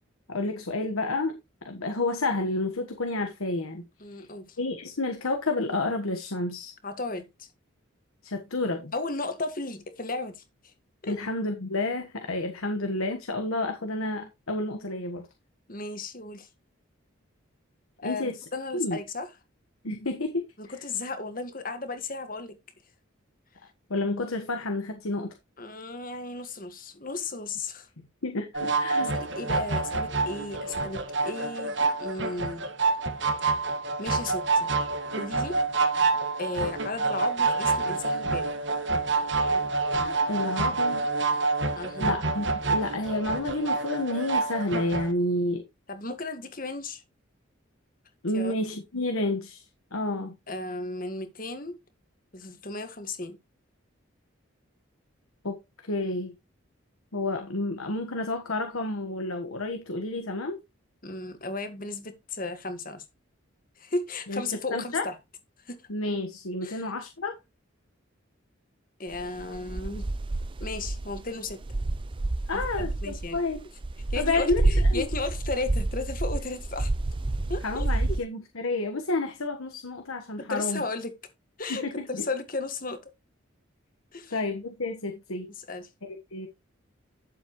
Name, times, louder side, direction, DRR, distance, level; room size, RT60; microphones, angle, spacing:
voice 1, 0.3-1.4 1.6-3.9 4.1-4.2 4.6-6.7 8.2-8.9 11.1-15.3 18.0-18.4 18.7-19.0 19.8-20.4 23.9-25.3 28.2-29.2 40.3-41.1 42.0-45.6 48.2-49.6 49.9-50.3 55.4-56.3 57.1-60.6 64.3-64.4 64.7-65.1 65.9-67.3 72.5-73.7 74.2-74.6 74.9-75.0 77.6-80.8 81.7-82.2 84.3-85.5 86.0-86.5, left 2 dB, 85° left, 1.4 m, -30 dB
voice 2, 4.0-4.6 6.8-7.5 8.9-10.4 11.0-11.2 15.7-16.5 18.0-19.3 20.6-22.6 25.6-27.9 29.1-32.7 34.0-34.7 35.2-35.6 36.4-38.5 41.7-42.1 45.9-47.0 48.3-48.5 50.5-51.8 52.3-53.4 61.0-63.0 63.8-65.2 65.6-65.8 66.6-66.9 69.0-70.0 70.6-71.6 72.5-73.4 74.1-76.9 77.5-77.9 80.4-81.1 81.6-83.1 84.1-84.3 85.5-85.9, left 3 dB, 40° left, 1.7 m, -35 dB
sound 1, 28.5-45.1, right 3 dB, 55° right, 1.6 m, -27 dB
sound 2, 69.1-78.2, right 2 dB, 25° right, 0.5 m, -29 dB
11.0 x 7.4 x 3.1 m
head